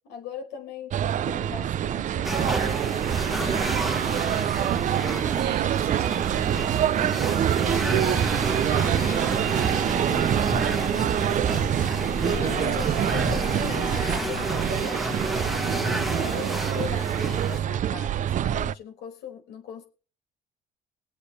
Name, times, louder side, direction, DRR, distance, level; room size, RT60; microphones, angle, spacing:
voice 1, 0.1-2.6 8.8-9.3 9.8-11.7 12.2-15.1 15.6-19.8, left 7 dB, 85° left, 5.0 m, -39 dB
sound 1, 0.9-18.7, right 10 dB, 50° right, 0.5 m, -25 dB
sound 2, 2.2-17.6, right 1 dB, ahead, 1.4 m, -31 dB
sound 3, 4.7-14.5, left 9 dB, 55° left, 1.0 m, -44 dB
voice 2, 4.8-8.4 16.2-16.7, right 14 dB, 75° right, 1.3 m, -38 dB
22.0 x 8.4 x 3.3 m
cardioid pair, 110°, 17 cm